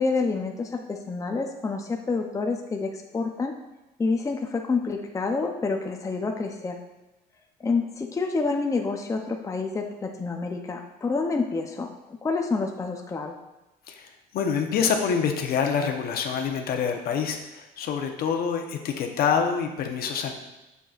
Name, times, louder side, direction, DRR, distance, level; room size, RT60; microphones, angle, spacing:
voice 1, 0.0-3.5 4.0-6.8 7.6-13.3, left 4 dB, 20° left, 3 dB, 0.6 m, -28 dB
voice 2, 13.9-20.3, left 6 dB, 65° left, 4 dB, 0.9 m, -26 dB
7.6 x 6.8 x 2.4 m, 0.97 s
cardioid pair, 110°, 17 cm